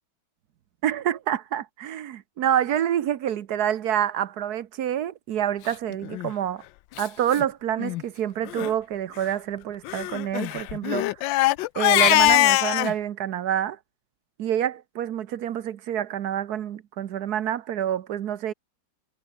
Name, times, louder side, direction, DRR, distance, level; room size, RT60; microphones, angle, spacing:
voice 1, 0.8-6.6 7.0-11.2 11.8-13.8 14.4-18.5, right 10 dB, 60° right, 1.2 m, -27 dB
Crying sobbing, 6.0-6.3 7.0-7.1 7.3-7.4 7.8-8.0 8.5-8.7 9.9-12.9, left 17 dB, 75° left, 1.2 m, -22 dB
omnidirectional pair, 2.2 m